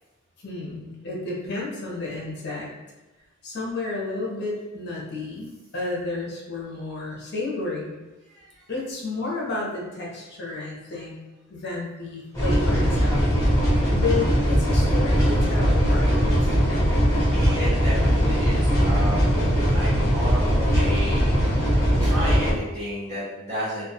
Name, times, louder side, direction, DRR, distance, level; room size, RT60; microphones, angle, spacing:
voice 1, 0.4-2.7 3.4-8.0 8.7-11.2 11.5-13.3 13.9-16.5, left 3 dB, 50° left, -3 dB, 0.7 m, -31 dB
voice 2, 8.3-8.7 15.1-15.2 16.6-16.7 17.3-19.4 19.7-21.3 22.0-23.8, equal, 40° right, -12 dB, 1.2 m, -32 dB
sound 1, 12.3-22.5, equal, 15° left, 0.7 m, -20 dB
2.2 x 2.2 x 2.7 m, 1.1 s
head